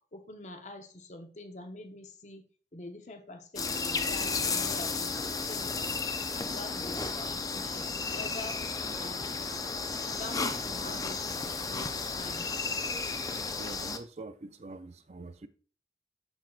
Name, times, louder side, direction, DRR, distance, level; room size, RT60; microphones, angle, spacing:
voice 1, 0.1-2.4 2.7-5.8 6.3-8.6 9.0-9.4 10.2-11.2 11.6-12.6, left 2 dB, 40° left, 0.8 m, -45 dB
sound 1, 3.6-14.0, left 4 dB, 20° left, 0.4 m, -33 dB
voice 2, 13.5-15.5, right 3 dB, 35° right, 0.4 m, -44 dB
13.5 x 4.6 x 2.4 m
head